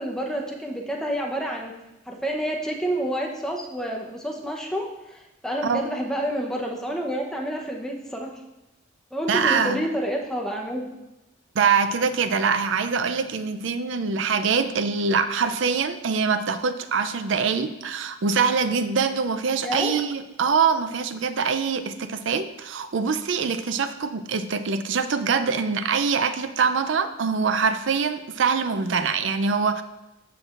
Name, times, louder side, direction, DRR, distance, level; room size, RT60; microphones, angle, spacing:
voice 1, 0.0-1.7 2.1-8.3 9.1-10.9 19.6-20.0, right 1 dB, 5° left, -1 dB, 0.7 m, -29 dB
voice 2, 9.3-9.8 11.6-29.8, right 5 dB, 70° right, 10 dB, 0.5 m, -24 dB
14.0 x 4.7 x 2.5 m, 0.98 s
head